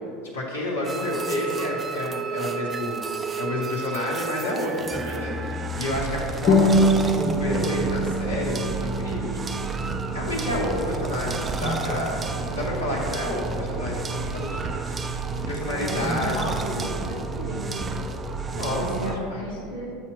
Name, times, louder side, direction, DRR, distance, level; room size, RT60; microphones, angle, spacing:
voice 1, 0.3-3.0 3.4-9.7 10.1-12.2 12.5-15.2 15.5-16.9 18.5-18.9 19.3-19.5, left 1 dB, 75° left, -5 dB, 1.0 m, -29 dB
sound 1, 0.8-19.2, right 4 dB, 25° right, 0.4 m, -31 dB
sound 2, 6.5-11.5, equal, 30° left, 1.1 m, -25 dB
voice 2, 12.4-12.8 15.6-17.9 18.7-19.9, right 1 dB, 85° right, -6 dB, 1.1 m, -34 dB
7.4 x 2.9 x 6.0 m, 2.4 s
figure-of-eight pair, 75°, 0 cm